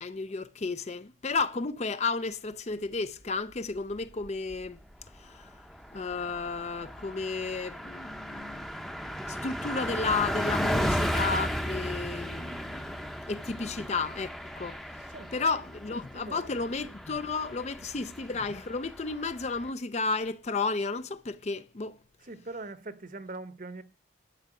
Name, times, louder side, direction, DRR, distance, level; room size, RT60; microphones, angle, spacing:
voice 1, 0.0-4.8 5.2-5.5 5.9-14.3 14.6-14.8 15.3-22.0, left 4 dB, 35° left, 0.5 m, -33 dB
Car passing by, 4.0-4.7 5.0-5.1 5.4-19.7, equal, ahead, 0.7 m, -35 dB
voice 2, 16.1-16.6 17.8-18.1 22.2-23.8, right 2 dB, 45° right, 0.9 m, -42 dB
11.5 x 5.5 x 8.8 m
head